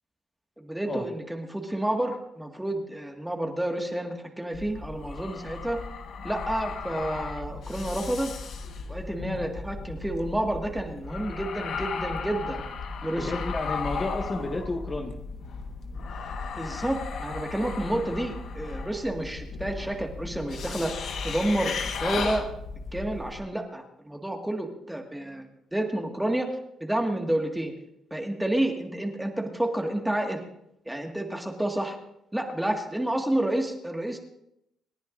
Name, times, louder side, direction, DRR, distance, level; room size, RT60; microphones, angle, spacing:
voice 1, 0.6-5.8 6.2-8.3 8.9-12.6 13.0-13.3 16.6-22.5 22.9-27.7 28.1-30.4 30.9-32.0 32.3-34.2, right 1 dB, 5° right, 2 dB, 1.9 m, -30 dB
sound 1, 4.5-23.4, left 5 dB, 70° left, 1.4 m, -35 dB
voice 2, 13.2-15.2, left 2 dB, 30° left, 2 dB, 1.8 m, -31 dB
28.0 x 10.0 x 2.6 m, 0.80 s
cardioid pair, 90°, 0 cm